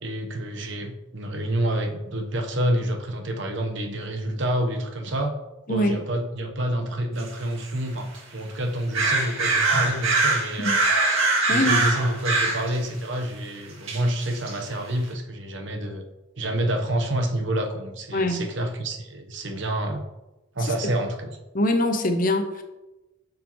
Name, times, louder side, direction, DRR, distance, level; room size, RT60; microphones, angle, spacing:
voice 1, 0.0-5.3 5.7-10.8 11.5-16.1 16.4-20.0 20.5-21.4, right 1 dB, 65° right, 4 dB, 1.0 m, -28 dB
voice 2, 5.7-6.0 10.6-10.7 11.5-11.8 18.1-18.4 21.5-22.6, left 1 dB, 40° left, 6 dB, 0.7 m, -23 dB
sound 1, 7.2-7.3 7.6-7.7 8.1-8.2 8.9-12.8 13.9-14.5, right 3 dB, 85° right, 2.0 m, -22 dB
8.5 x 6.2 x 3.0 m, 1.0 s
head